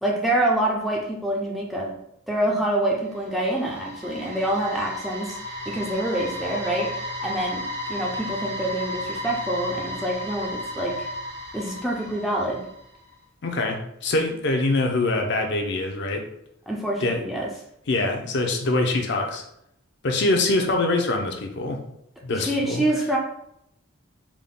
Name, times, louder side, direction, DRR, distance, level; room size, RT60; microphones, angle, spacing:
voice 1, 0.0-1.9 2.3-5.4 5.7-6.9 7.2-7.6 7.9-10.9 11.5-12.6 16.7-17.5 22.3-23.2, right 1 dB, ahead, -3 dB, 0.4 m, -26 dB
sound 1, 2.8-12.9, left 1 dB, 50° right, 1.1 m, -34 dB
voice 2, 13.4-16.2 17.0-17.2 17.9-19.4 20.0-21.8 22.2-22.8, left 2 dB, 55° left, 2 dB, 0.5 m, -24 dB
3.5 x 2.2 x 3.7 m, 0.76 s
head